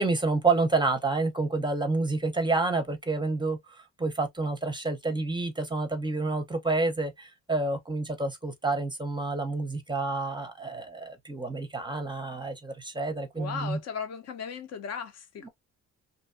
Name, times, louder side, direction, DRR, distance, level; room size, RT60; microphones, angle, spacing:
voice 1, 0.0-13.8 15.4-15.5, right 3 dB, 15° right, 0.6 m, -29 dB
voice 2, 13.4-15.5, left 7 dB, 55° left, 0.7 m, -36 dB
2.6 x 2.2 x 2.4 m
cardioid pair, 90°, 30 cm